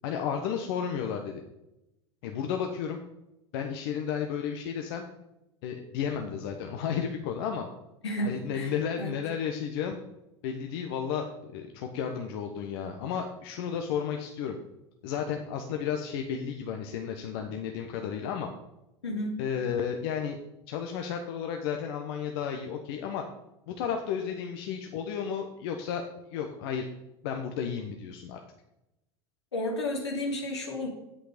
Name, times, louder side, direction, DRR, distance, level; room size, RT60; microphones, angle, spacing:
voice 1, 0.0-1.4 2.2-3.0 3.5-5.0 5.6-7.7 8.2-10.0 10.4-14.6 15.0-18.5 19.4-20.4 20.7-23.2 23.7-26.0 26.3-26.9 27.2-28.4, left 7 dB, 65° left, 4 dB, 1.2 m, -33 dB
voice 2, 8.0-8.7 9.0-9.1 19.0-19.4 29.5-30.9, left 1 dB, 90° left, 0 dB, 2.9 m, -32 dB
10.0 x 8.2 x 5.1 m, 0.89 s
hypercardioid pair, 85°, 14 cm